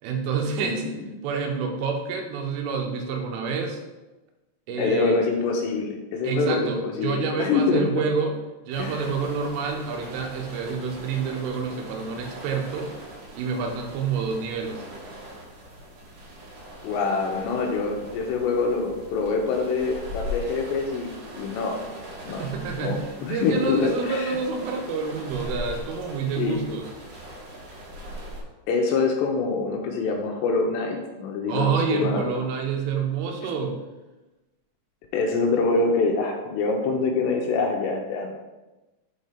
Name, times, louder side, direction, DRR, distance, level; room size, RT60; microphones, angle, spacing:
voice 1, 0.0-0.8 1.2-3.8 4.7-5.2 6.2-8.4 8.6-12.9 13.4-14.8 22.3-23.0 23.3-26.9 31.5-33.8, right 5 dB, 85° right, 2 dB, 3.4 m, -28 dB
voice 2, 4.7-7.9 8.8-9.1 16.8-21.8 22.3-22.5 22.8-24.4 26.4-26.6 28.7-32.3 35.1-38.3, left 4 dB, 80° left, 2 dB, 2.6 m, -25 dB
sound 1, 8.7-28.4, left 1 dB, 55° right, 2.4 m, -40 dB
7.3 x 4.3 x 5.0 m, 1.1 s
omnidirectional pair, 5.7 m